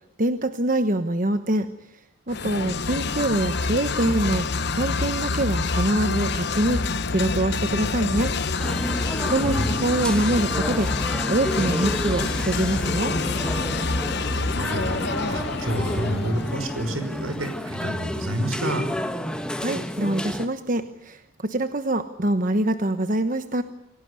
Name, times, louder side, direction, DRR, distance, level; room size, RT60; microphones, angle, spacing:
voice 1, 0.2-1.7 2.3-4.5 4.7-6.8 7.1-8.3 9.3-10.9 11.3-13.1 19.6-23.6, right 1 dB, 40° right, 9 dB, 1.2 m, -24 dB
sound 1, 2.3-17.0, left 3 dB, 55° left, 1.0 m, -27 dB
sound 2, 8.6-20.5, equal, 5° left, 1.7 m, -31 dB
voice 2, 9.2-9.7 13.9-18.8, equal, 85° right, 9 dB, 5.6 m, -29 dB
28.0 x 18.0 x 9.8 m, 0.77 s
head